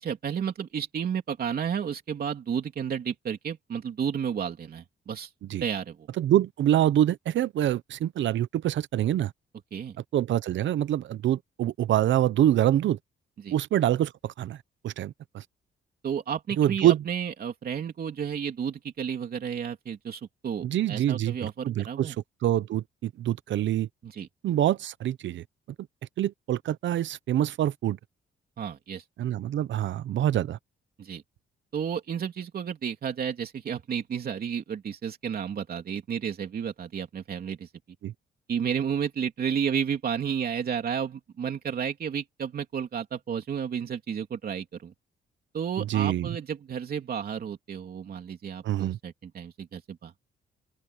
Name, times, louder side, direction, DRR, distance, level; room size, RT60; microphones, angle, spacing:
voice 1, 0.0-5.3 5.6-6.1 9.7-10.0 13.4-13.5 16.0-22.2 24.0-24.3 28.6-29.0 31.0-31.2 31.7-37.7 38.5-44.9 45.5-50.2, right 7 dB, 50° right, 3.2 m, -32 dB
voice 2, 6.2-9.3 10.1-13.0 13.5-14.6 14.8-15.4 16.6-17.0 20.6-22.1 22.4-23.9 24.4-25.4 26.2-28.0 29.2-30.6 38.0-38.1 45.8-46.3 48.6-49.0, right 12 dB, 65° right, 0.7 m, -25 dB
open air
cardioid pair, 155°, 20 cm